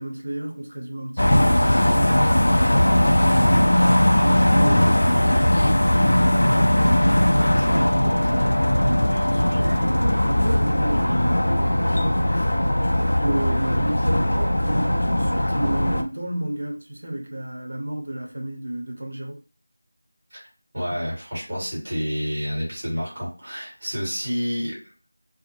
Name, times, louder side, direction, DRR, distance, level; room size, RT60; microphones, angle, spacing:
voice 1, 0.0-3.9 4.2-19.4, right 1 dB, 60° right, 0.7 m, -31 dB
sound 1, 1.2-16.0, left 1 dB, 70° left, 0.4 m, -19 dB
voice 2, 20.7-24.7, equal, 20° right, 1.3 m, -29 dB
2.6 x 2.1 x 3.0 m
figure-of-eight pair, 180°, 0 cm